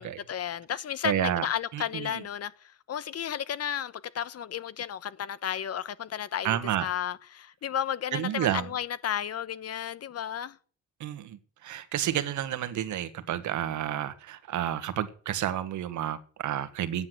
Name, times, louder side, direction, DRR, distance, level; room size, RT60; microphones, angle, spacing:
voice 1, 0.0-10.6, left 9 dB, 55° left, 1.0 m, -33 dB
voice 2, 1.0-1.5 1.7-2.2 6.4-6.9 8.1-8.6 11.0-17.1, right 11 dB, 75° right, 1.5 m, -30 dB
12.5 x 9.7 x 7.7 m
cardioid pair, 90°, 30 cm